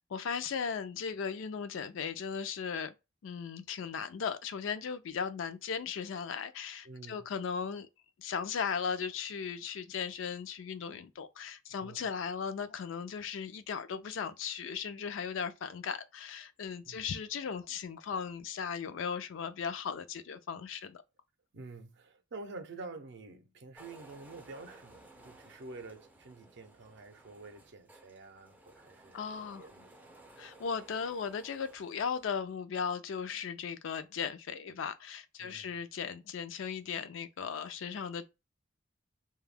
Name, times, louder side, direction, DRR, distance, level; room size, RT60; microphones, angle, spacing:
voice 1, 0.0-2.9 3.2-7.9 8.2-21.0 29.1-29.6 30.4-38.3, left 6 dB, 70° left, 0.4 m, -37 dB
voice 2, 6.8-7.3 11.8-12.1 16.8-17.0 21.5-29.9 35.4-35.8, right 3 dB, 60° right, 0.5 m, -48 dB
sound 1, 23.8-32.3, right 2 dB, 10° right, 0.4 m, -57 dB
2.2 x 2.0 x 3.2 m
head